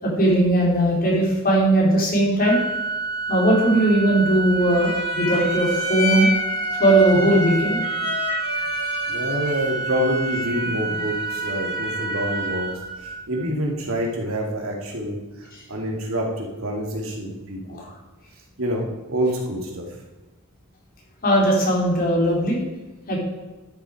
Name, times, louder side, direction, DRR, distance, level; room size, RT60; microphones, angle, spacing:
voice 1, 0.0-2.6 3.3-6.3 6.8-7.8 15.5-15.6 17.8-17.9 21.2-22.6 23.1-23.2, right 1 dB, 45° left, -3 dB, 3.7 m, -19 dB
Organ, 2.4-13.4, right 4 dB, 30° right, 3.5 m, -28 dB
sound 1, 4.6-12.7, left 3 dB, 70° left, 4.1 m, -31 dB
voice 2, 9.1-12.7 13.0-17.8 18.6-19.9, equal, 70° right, 0 dB, 2.5 m, -27 dB
12.0 x 7.2 x 4.8 m, 1.1 s
head